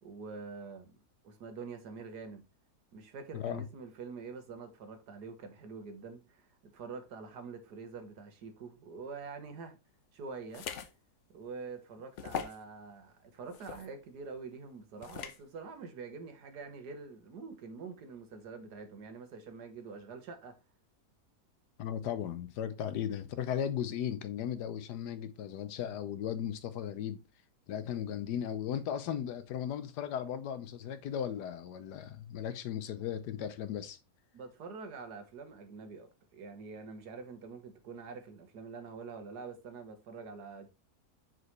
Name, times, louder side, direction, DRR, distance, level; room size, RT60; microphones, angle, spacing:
voice 1, 0.0-1.0 1.2-2.4 2.9-9.8 10.1-10.7 11.3-20.5 22.9-23.1 34.3-40.7, right 4 dB, 80° right, 1.7 m, -46 dB
sound 1, 10.5-10.9 11.4-11.5 12.2-12.6 13.5-13.9 15.0-15.4, left 7 dB, 60° left, 0.9 m, -40 dB
voice 2, 21.8-27.2 27.7-34.0, left 9 dB, 85° left, 1.3 m, -36 dB
6.1 x 5.0 x 3.1 m
omnidirectional pair, 1.7 m